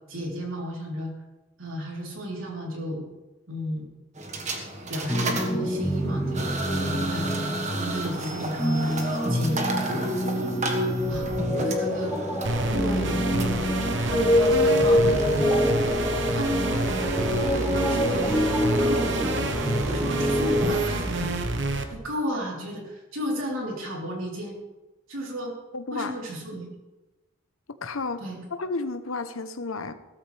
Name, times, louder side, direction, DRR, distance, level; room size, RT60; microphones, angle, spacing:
voice 1, 0.1-1.1 1.6-3.1 3.5-3.9 4.9-7.3 7.7-10.1 11.1-12.2 12.7-13.7 14.0-15.5 16.3-16.8 17.4-19.4 19.8-21.3 21.9-24.6 25.1-25.5 25.9-26.8 28.2-28.4, equal, 75° right, -2 dB, 3.6 m, -33 dB
sound 1, 4.2-21.1, right 1 dB, 35° right, 1.5 m, -33 dB
sound 2, 5.1-20.8, left 1 dB, 10° left, 1.2 m, -26 dB
sound 3, 12.4-21.8, right 2 dB, 55° right, 1.1 m, -28 dB
voice 2, 25.7-26.1 27.8-28.2 28.5-29.9, left 3 dB, 80° left, 10 dB, 0.9 m, -31 dB
16.5 x 14.0 x 3.4 m, 1.1 s
head